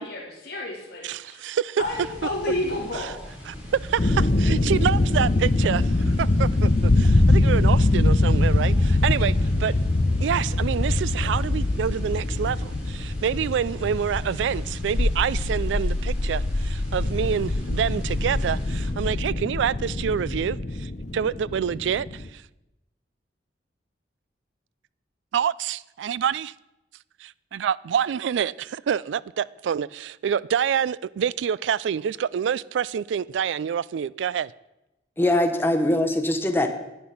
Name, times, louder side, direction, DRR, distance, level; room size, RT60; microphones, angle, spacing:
voice 1, 0.0-1.4 1.8-3.3, left 2 dB, 65° left, 2.4 m, -31 dB
voice 2, 1.0-1.8 2.9-3.1 3.5-9.8 10.2-22.4 25.3-26.5 27.2-34.5, right 8 dB, 90° right, 0.3 m, -27 dB
sound 1, 1.8-18.9, equal, 5° right, 3.6 m, -42 dB
sound 2, 4.0-22.3, left 2 dB, 40° left, 0.6 m, -23 dB
voice 3, 35.2-36.7, left 1 dB, 15° left, 1.0 m, -22 dB
10.0 x 9.6 x 5.8 m
head